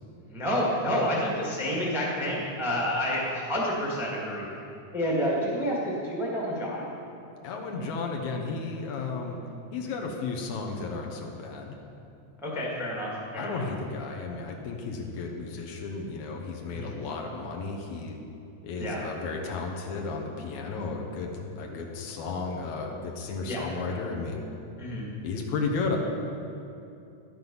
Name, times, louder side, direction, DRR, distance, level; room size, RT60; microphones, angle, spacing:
voice 1, 0.3-4.5 4.9-6.8 12.4-13.6 16.7-16.9 18.8-19.0 23.4-23.6 24.8-25.0, equal, ahead, -4 dB, 1.0 m, -29 dB
voice 2, 7.4-9.4 9.7-11.8 13.4-18.2 18.6-24.5 25.2-26.0, left 4 dB, 75° left, 1 dB, 2.2 m, -33 dB
12.0 x 7.9 x 5.4 m, 2.6 s
omnidirectional pair, 3.5 m